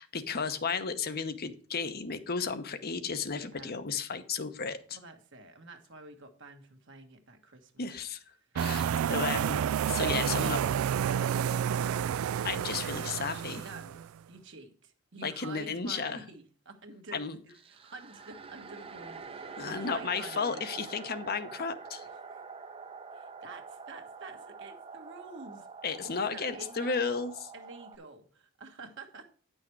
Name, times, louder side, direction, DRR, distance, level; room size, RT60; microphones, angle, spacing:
voice 1, 0.0-5.0 7.8-8.2 8.5-10.6 12.4-13.7 15.2-16.2 17.1-17.4 19.6-22.1 25.8-27.3, left 5 dB, 50° left, 10 dB, 0.8 m, -33 dB
voice 2, 3.4-3.7 4.9-8.0 8.8-9.4 10.0-12.0 13.6-20.7 22.2-22.4 23.1-25.7 26.0-27.0 27.5-29.3, right 2 dB, 60° right, 5 dB, 1.5 m, -48 dB
sound 1, 8.6-14.1, right 9 dB, 90° right, 0.3 m, -30 dB
sound 2, 17.5-28.0, right 4 dB, 25° right, 0.7 m, -46 dB
9.8 x 6.3 x 4.6 m, 0.43 s
head